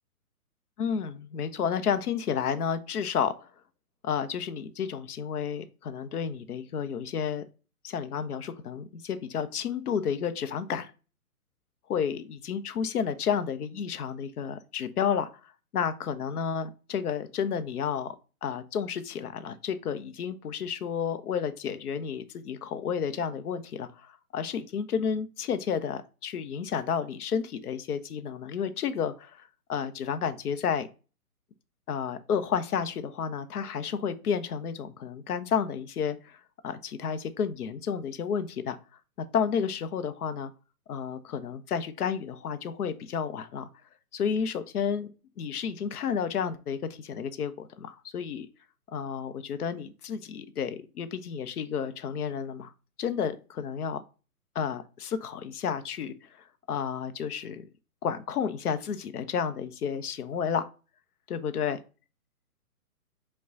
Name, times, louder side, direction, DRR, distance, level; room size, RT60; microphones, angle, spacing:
voice 1, 0.8-3.5 4.0-7.4 7.8-10.9 11.9-18.1 18.4-30.9 31.9-38.8 39.3-40.5 40.9-43.7 44.1-45.1 45.4-48.5 48.9-52.7 53.0-54.0 54.5-56.3 56.7-57.6 58.0-60.7 61.3-61.8, left 7 dB, 75° left, 11 dB, 0.7 m, -31 dB
5.5 x 2.3 x 3.6 m, 0.34 s
hypercardioid pair, 150°, 46 cm